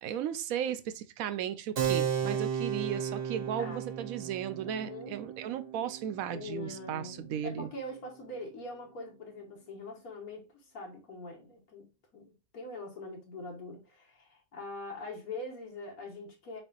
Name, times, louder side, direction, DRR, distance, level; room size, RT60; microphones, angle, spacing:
voice 1, 0.0-7.7, right 9 dB, 75° right, 1.0 m, -36 dB
Keyboard (musical), 1.8-7.9, right 8 dB, 50° right, 1.0 m, -35 dB
voice 2, 4.7-5.2 6.3-16.6, left 2 dB, 90° left, 1.8 m, -43 dB
4.3 x 4.0 x 2.3 m
omnidirectional pair, 1.5 m